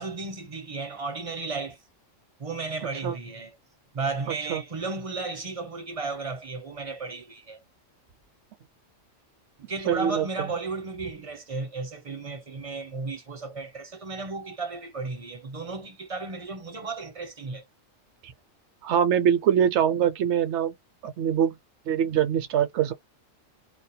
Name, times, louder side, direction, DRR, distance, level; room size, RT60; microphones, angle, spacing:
voice 1, 0.0-1.8 2.4-3.6 3.9-7.6 9.7-17.6, right 3 dB, 35° right, 0.6 m, -34 dB
voice 2, 9.9-10.5 18.2-18.3 18.8-20.7 21.0-21.6 21.9-22.9, right 9 dB, 70° right, 0.8 m, -23 dB
2.3 x 2.1 x 2.6 m
omnidirectional pair, 1.3 m